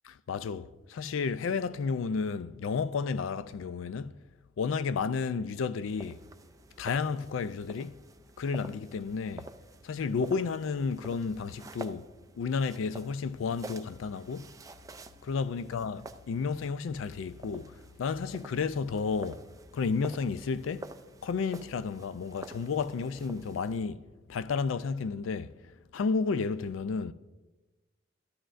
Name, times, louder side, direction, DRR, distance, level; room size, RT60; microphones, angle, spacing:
voice 1, 0.1-4.1 4.6-6.2 6.8-8.0 8.4-9.5 9.8-12.1 12.4-14.5 15.2-19.4 19.7-20.9 21.2-24.0 24.3-25.6 25.9-27.1, left 5 dB, 75° left, 0.4 m, -32 dB
sound 1, 5.8-23.8, right 2 dB, 15° right, 0.3 m, -49 dB
13.5 x 11.5 x 2.5 m
head